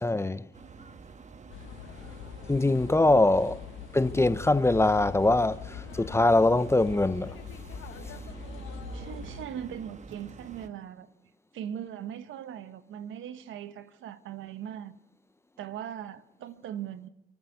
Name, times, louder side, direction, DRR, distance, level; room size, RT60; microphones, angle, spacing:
voice 1, 0.0-0.4 2.5-3.6 3.9-5.6 6.0-7.4, left 2 dB, 15° left, 0.7 m, -22 dB
sound 1, 0.5-10.7, right 4 dB, 35° right, 1.3 m, -46 dB
sound 2, 1.5-9.5, left 12 dB, 90° left, 1.3 m, -43 dB
voice 2, 8.9-11.1 11.5-15.0 15.6-17.1, right 9 dB, 80° right, 1.2 m, -39 dB
29.5 x 12.0 x 8.8 m
cardioid pair, 90°, 20 cm